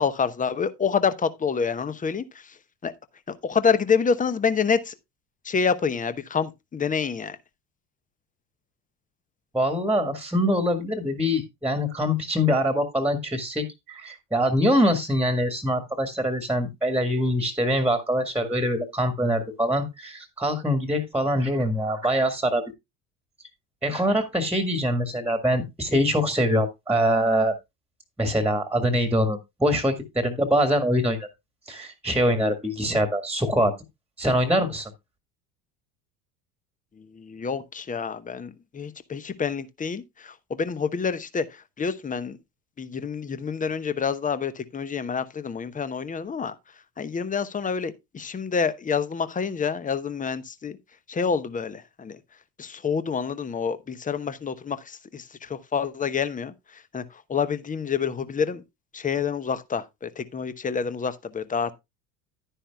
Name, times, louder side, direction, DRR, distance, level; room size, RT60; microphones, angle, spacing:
voice 1, 0.0-2.6 2.8-2.9 3.3-4.9 5.4-7.4 37.0-42.4 42.8-46.5 47.0-50.8 51.1-52.2 52.6-58.6 58.9-61.7, left 6 dB, 15° left, 1.0 m, -27 dB
voice 2, 9.5-22.6 23.8-27.5 28.2-31.3 31.7-33.7 34.2-34.9, equal, 5° right, 1.8 m, -24 dB
11.5 x 10.0 x 2.3 m
figure-of-eight pair, 70°, 48 cm